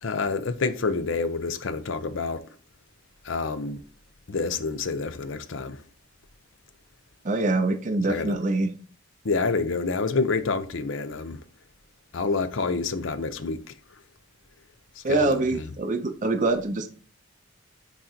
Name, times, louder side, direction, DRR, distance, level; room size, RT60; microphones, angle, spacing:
voice 1, 0.0-2.5 3.2-3.8 4.3-5.8 8.1-8.4 9.2-11.4 12.1-13.7 15.0-15.6, left 4 dB, 70° left, 0.7 m, -28 dB
voice 2, 7.2-8.7 15.0-16.9, right 2 dB, 40° right, 0.6 m, -24 dB
10.0 x 3.8 x 2.8 m
head